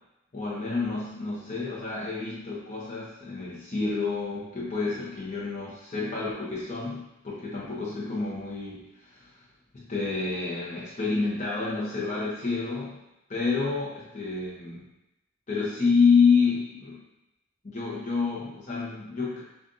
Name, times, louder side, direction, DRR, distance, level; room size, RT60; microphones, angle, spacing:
voice 1, 0.3-9.3 9.7-13.0 13.3-14.9 15.5-17.0 17.6-19.4, left 4 dB, 35° left, -6 dB, 0.9 m, -28 dB
7.4 x 2.5 x 2.7 m, 0.91 s
head